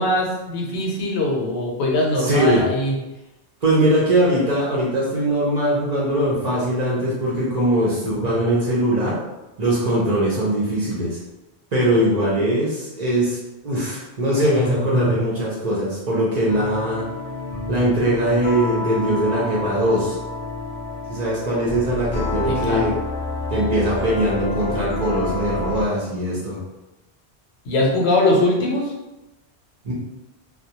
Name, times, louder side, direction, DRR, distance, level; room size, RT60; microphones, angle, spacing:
voice 1, 0.0-3.0 22.5-22.9 27.6-28.9, left 1 dB, 80° left, -1 dB, 0.9 m, -21 dB
voice 2, 2.2-2.6 3.6-9.2 9.6-11.2 11.7-13.4 13.6-17.0 17.7-20.2 21.1-22.9 23.5-26.6 29.8-29.9, right 1 dB, 50° right, -6 dB, 0.6 m, -21 dB
sound 1, 16.5-26.0, left 2 dB, 45° left, 0.4 m, -29 dB
2.2 x 2.0 x 2.8 m, 1.0 s
omnidirectional pair, 1.1 m